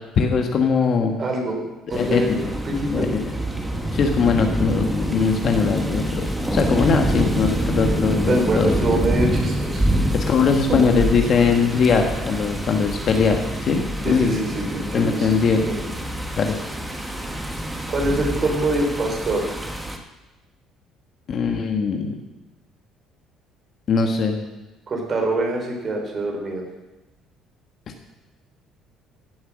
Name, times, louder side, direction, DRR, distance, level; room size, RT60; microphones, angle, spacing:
voice 1, 0.2-1.1 1.9-2.2 2.9-3.1 3.9-8.9 10.1-14.4 14.9-15.7 16.4-16.5 21.3-22.1 23.9-24.4, left 5 dB, 45° left, 3 dB, 1.3 m, -21 dB
voice 2, 1.2-3.2 8.3-9.9 10.9-11.0 14.0-15.8 17.9-19.4 24.9-26.6, right 2 dB, 35° right, 2 dB, 4.1 m, -25 dB
sound 1, 1.9-20.0, right 1 dB, 10° right, 1.4 m, -26 dB
16.5 x 7.9 x 6.3 m, 1.1 s
cardioid pair, 120°, 0 cm